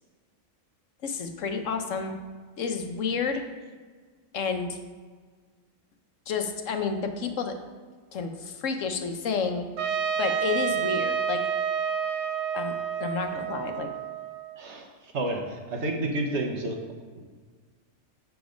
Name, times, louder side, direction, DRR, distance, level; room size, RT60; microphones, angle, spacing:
voice 1, 1.0-2.2 2.6-3.4 4.3-4.8 6.3-7.5 8.1-9.7 10.2-11.4 12.5-12.7 13.0-13.9, left 5 dB, 80° left, 6 dB, 1.2 m, -30 dB
Trumpet, 9.8-14.6, right 8 dB, 90° right, 1.0 m, -29 dB
voice 2, 14.6-16.8 17.1-17.2, right 2 dB, 65° right, 2 dB, 1.3 m, -30 dB
7.1 x 6.0 x 5.1 m, 1.5 s
omnidirectional pair, 1.3 m